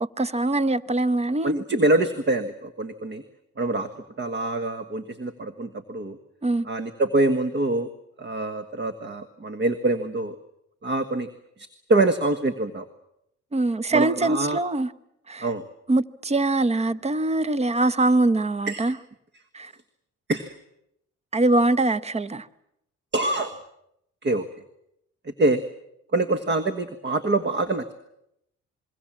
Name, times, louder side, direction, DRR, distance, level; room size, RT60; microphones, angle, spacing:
voice 1, 0.0-1.6 6.4-6.7 13.5-14.9 15.3-15.4 15.9-18.9 19.5-19.7 21.3-22.5, right 2 dB, 20° right, 0.9 m, -23 dB
voice 2, 1.4-3.2 3.6-3.9 4.2-6.2 6.6-7.9 8.2-10.4 10.8-11.3 11.6-12.9 13.9-14.6 15.4-15.6 18.7-18.9 20.3-20.5 23.1-23.5 24.2-24.5 25.2-25.6 26.1-27.9, right 2 dB, 35° right, 1.5 m, -25 dB
27.0 x 22.0 x 7.5 m
cardioid pair, 90°, 30 cm